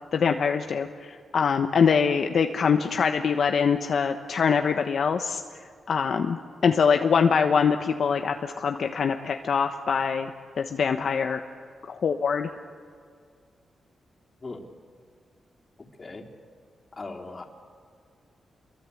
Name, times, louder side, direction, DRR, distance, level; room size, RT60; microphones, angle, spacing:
voice 1, 0.1-5.4 5.9-10.3 10.6-11.4 11.9-12.5, left 6 dB, 65° left, 5 dB, 1.2 m, -24 dB
voice 2, 16.9-17.4, left 3 dB, 35° left, 1 dB, 3.7 m, -38 dB
27.5 x 23.0 x 8.6 m, 2.1 s
cardioid pair, 80°, 0 cm